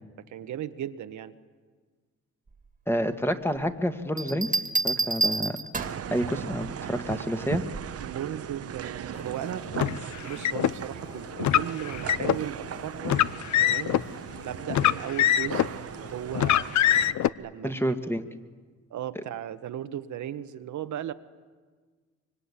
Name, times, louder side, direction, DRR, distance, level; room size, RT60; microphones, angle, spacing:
voice 1, 0.3-1.3 8.0-9.7 10.2-13.3 13.6-14.0 14.4-16.7 17.4-18.0 18.9-21.1, right 10 dB, 70° right, 9 dB, 1.4 m, -36 dB
voice 2, 2.9-5.6 6.1-7.6 17.6-18.2, equal, 10° left, 7 dB, 1.9 m, -29 dB
Bell, 4.2-6.1 7.7-8.1, right 3 dB, 25° right, 2.1 m, -28 dB
sound 1, 5.8-17.1, right 9 dB, 50° right, 1.0 m, -38 dB
Car, 9.7-10.7 11.4-12.4 13.0-14.0 14.7-15.8 16.4-17.3, left 11 dB, 70° left, 0.8 m, -23 dB
25.0 x 24.0 x 10.0 m, 1.5 s
cardioid pair, 90°, 30 cm